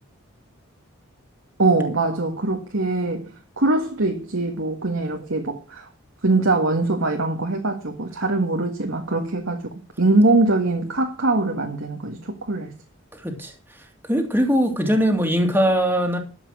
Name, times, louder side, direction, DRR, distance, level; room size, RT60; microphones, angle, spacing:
voice 1, 1.6-5.9 6.2-9.6 10.0-12.7, right 2 dB, 70° right, 1.8 m, -22 dB
voice 2, 14.1-16.2, equal, 10° right, 2.3 m, -20 dB
13.0 x 7.9 x 6.2 m
head